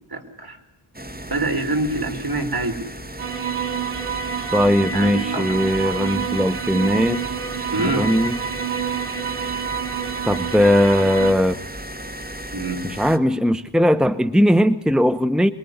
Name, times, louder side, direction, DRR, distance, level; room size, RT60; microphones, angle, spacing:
voice 1, 0.1-0.6 1.3-2.8 4.9-5.5 7.7-8.1 12.5-12.8, right 2 dB, 50° right, 5 dB, 4.0 m, -25 dB
sound 1, 0.9-13.2, right 1 dB, 20° right, 1.7 m, -35 dB
sound 2, 3.2-11.3, right 7 dB, 80° right, 1.3 m, -28 dB
voice 2, 4.5-7.2 7.8-8.4 10.2-11.6 12.8-15.5, equal, ahead, 11 dB, 1.0 m, -19 dB
25.5 x 22.5 x 9.6 m, 0.85 s
wide cardioid pair, 75°, 49 cm